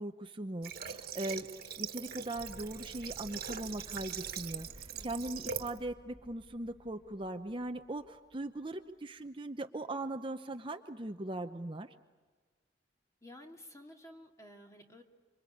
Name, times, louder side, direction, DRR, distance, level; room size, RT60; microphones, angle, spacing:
voice 1, 0.0-1.5 1.8-11.9, right 1 dB, 30° right, 7 dB, 0.8 m, -40 dB
Water / Water tap faucet, 0.6-5.8, right 8 dB, 55° right, 1.7 m, -42 dB
sound 1, 2.3-8.8, equal, 10° right, 2.0 m, -55 dB
voice 2, 4.9-5.4 13.2-15.0, left 1 dB, 15° left, 3 dB, 2.4 m, -53 dB
27.0 x 25.5 x 8.6 m, 1.4 s
head